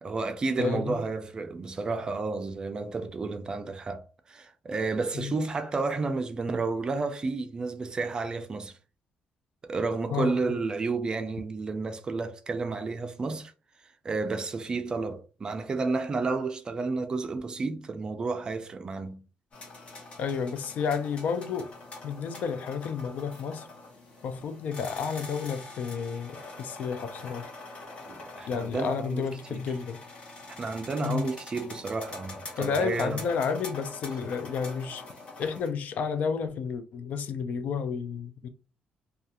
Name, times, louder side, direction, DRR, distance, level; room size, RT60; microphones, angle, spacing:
voice 1, 0.0-8.8 9.6-13.5 13.8-19.2 28.1-29.6 30.6-33.2, right 3 dB, 25° right, 0.4 m, -31 dB
voice 2, 0.6-1.0 5.1-5.3 10.1-10.4 20.2-21.7 22.0-23.7 24.2-27.5 28.5-30.0 31.0-31.3 32.6-35.0 35.4-38.5, left 6 dB, 60° left, 0.4 m, -31 dB
sound 1, 19.5-35.7, left 2 dB, 45° left, 1.0 m, -44 dB
2.4 x 2.3 x 2.8 m
cardioid pair, 150°, 3 cm